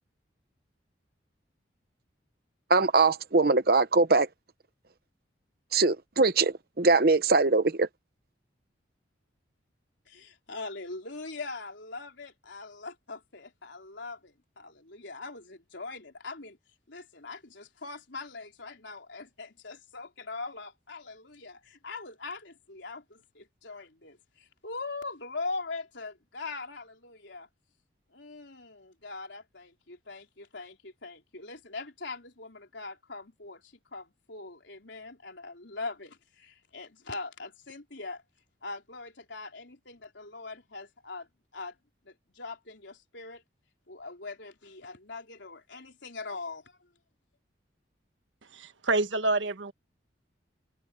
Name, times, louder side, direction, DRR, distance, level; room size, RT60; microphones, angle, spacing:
voice 1, 2.7-4.3 5.7-7.9, right 3 dB, 50° right, 0.9 m, -22 dB
voice 2, 10.1-16.6 16.9-27.5 28.1-38.2 38.6-41.3 41.5-41.8 42.1-43.4 43.9-46.6, left 3 dB, 70° left, 3.7 m, -41 dB
voice 3, 48.5-49.7, right 2 dB, 80° right, 1.5 m, -27 dB
head